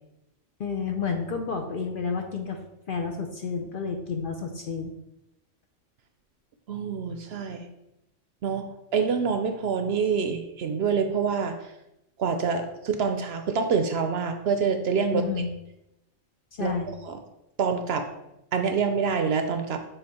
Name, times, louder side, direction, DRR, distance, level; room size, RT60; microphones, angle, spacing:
voice 1, 0.6-2.6 2.9-4.9 15.1-15.5 16.6-16.9, left 5 dB, 55° left, 4 dB, 0.7 m, -30 dB
voice 2, 6.7-7.6 8.4-8.7 8.9-11.5 12.2-15.2 16.6-16.7 17.1-17.2 17.6-18.1 18.5-19.8, right 5 dB, 65° right, 6 dB, 0.7 m, -26 dB
6.8 x 3.6 x 4.2 m, 0.89 s
omnidirectional pair, 1.3 m